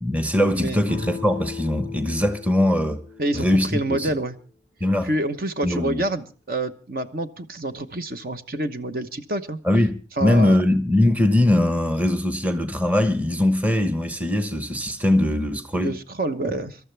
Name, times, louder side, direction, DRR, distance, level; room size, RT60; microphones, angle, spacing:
voice 1, 0.0-3.0 3.3-4.1 4.8-5.1 5.6-6.0 9.6-16.0, left 1 dB, 10° right, 1.0 m, -21 dB
sound 1, 0.8-4.5, left 5 dB, 80° right, 3.2 m, -38 dB
voice 2, 3.2-4.4 5.0-9.6 10.2-10.6 15.8-16.8, right 1 dB, 50° right, 1.0 m, -27 dB
26.0 x 13.0 x 3.3 m
head